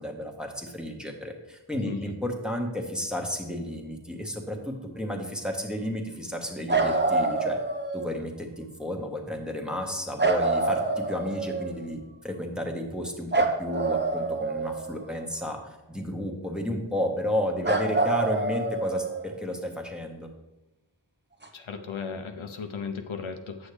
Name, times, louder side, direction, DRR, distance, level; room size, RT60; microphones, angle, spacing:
voice 1, 0.0-7.6 7.9-20.3, left 1 dB, ahead, 1 dB, 1.4 m, -32 dB
voice 2, 1.8-2.1 21.5-23.7, left 5 dB, 80° left, 6 dB, 0.8 m, -36 dB
sound 1, 6.7-8.2 10.2-11.8 13.3-15.2 17.6-19.4 21.4-21.5, right 3 dB, 20° right, 1.0 m, -26 dB
8.4 x 6.3 x 3.3 m, 1.0 s
cardioid pair, 40°, 47 cm